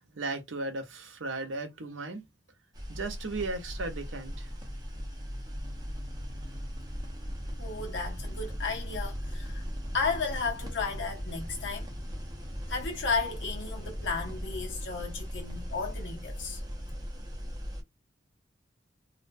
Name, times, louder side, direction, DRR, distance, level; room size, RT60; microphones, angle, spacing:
voice 1, 0.1-2.3 2.9-4.5, right 3 dB, 85° right, 0.7 m, -36 dB
sound 1, 2.7-17.8, equal, 20° right, 0.6 m, -38 dB
voice 2, 7.6-9.7 9.9-11.9 12.7-16.6, left 4 dB, 70° left, 0.7 m, -34 dB
2.5 x 2.1 x 2.5 m
head